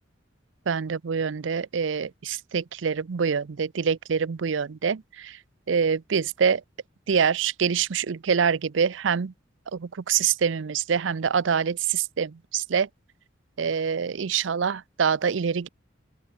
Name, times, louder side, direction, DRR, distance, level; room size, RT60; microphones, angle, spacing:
voice 1, 0.7-5.4 5.7-6.6 7.1-9.3 9.7-12.9 13.6-15.7, right 6 dB, 70° right, 0.5 m, -25 dB
open air
head